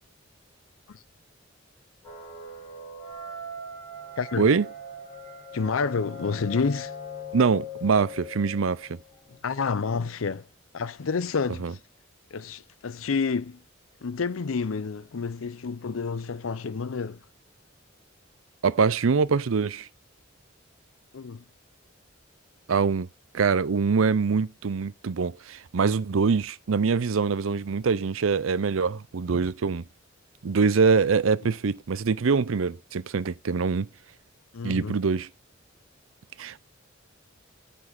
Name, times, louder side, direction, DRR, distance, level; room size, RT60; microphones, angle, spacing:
sound 1, 2.0-9.4, left 2 dB, 25° left, 5.9 m, -41 dB
voice 1, 5.5-6.9 9.4-10.5 10.7-11.8 12.3-13.6 14.0-17.2 21.1-21.4 31.4-31.5 34.5-34.9, left 5 dB, 90° left, 0.6 m, -29 dB
voice 2, 7.3-9.0 11.6-11.7 18.6-19.9 22.7-23.1 23.3-29.8 30.4-33.9 34.6-35.3 36.4-36.6, right 5 dB, 80° right, 0.6 m, -24 dB
9.8 x 4.2 x 6.0 m
head